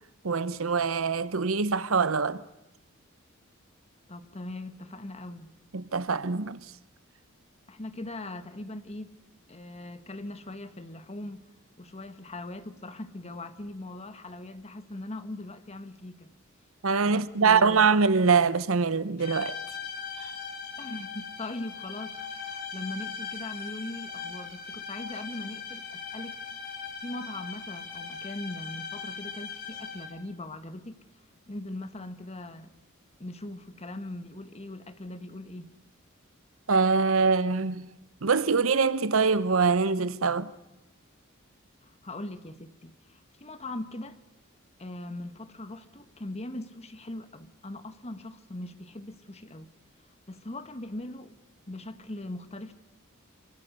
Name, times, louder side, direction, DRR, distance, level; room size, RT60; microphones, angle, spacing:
voice 1, 0.2-2.4 5.7-6.6 16.8-19.6 20.2-20.3 36.7-37.9 38.2-40.5, right 5 dB, 75° right, 0.9 m, -24 dB
voice 2, 4.1-5.5 7.7-9.1 9.5-11.5 11.8-16.3 17.1-17.9 20.8-26.4 27.0-31.0 31.5-32.7 33.2-35.7 41.9-44.2 44.8-49.7 50.3-51.4 51.7-52.7, left 1 dB, 30° left, 1.4 m, -40 dB
sound 1, 19.2-30.3, left 6 dB, 50° left, 4.0 m, -39 dB
26.5 x 25.0 x 6.7 m
head